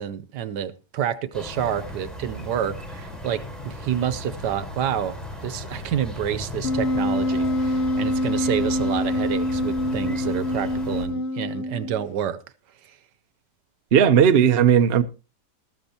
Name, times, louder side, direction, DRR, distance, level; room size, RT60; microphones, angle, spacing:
voice 1, 0.0-12.4, right 9 dB, 80° right, 1.4 m, -28 dB
sound 1, 1.3-11.0, left 1 dB, ahead, 4.0 m, -36 dB
Wind instrument woodwind instrument, 6.6-12.1, left 1 dB, 50° left, 1.0 m, -25 dB
voice 2, 13.9-15.0, right 8 dB, 45° right, 0.8 m, -16 dB
14.0 x 13.5 x 2.9 m
omnidirectional pair, 1.8 m